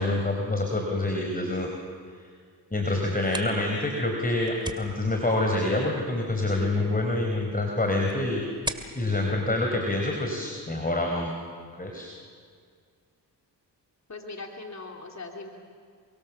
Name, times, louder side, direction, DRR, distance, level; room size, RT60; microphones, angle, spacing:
voice 1, 0.0-1.7 2.7-8.4 8.9-11.3 11.8-12.1, left 2 dB, 20° left, 1 dB, 4.2 m, -26 dB
sound 1, 3.0-10.6, right 1 dB, 10° right, 2.5 m, -42 dB
voice 2, 14.1-15.5, left 3 dB, 40° left, 1 dB, 3.4 m, -40 dB
29.0 x 23.5 x 7.3 m, 2.1 s
cardioid pair, 55°, 42 cm